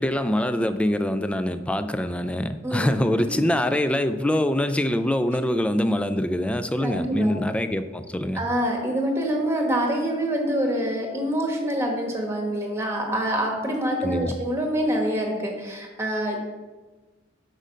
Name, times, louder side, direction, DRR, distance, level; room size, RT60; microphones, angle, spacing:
voice 1, 0.0-8.4 14.0-14.3, left 1 dB, 5° left, 9 dB, 0.3 m, -24 dB
voice 2, 2.6-2.9 3.3-3.4 6.8-7.5 8.3-16.4, equal, 15° right, 1 dB, 1.2 m, -26 dB
6.4 x 5.0 x 5.2 m, 1.3 s
head